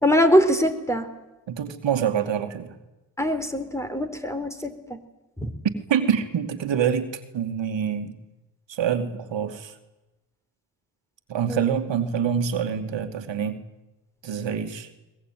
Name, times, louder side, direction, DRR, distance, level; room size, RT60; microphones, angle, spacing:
voice 1, 0.0-1.1 3.2-5.0 5.4-5.5 11.5-11.7, equal, 5° left, 8 dB, 4.0 m, -22 dB
voice 2, 1.5-2.8 5.9-8.2 8.7-9.7 11.3-13.6 14.2-14.9, right 8 dB, 65° right, 7 dB, 2.4 m, -26 dB
21.5 x 21.0 x 9.3 m, 1.0 s
supercardioid pair, 55°, 48 cm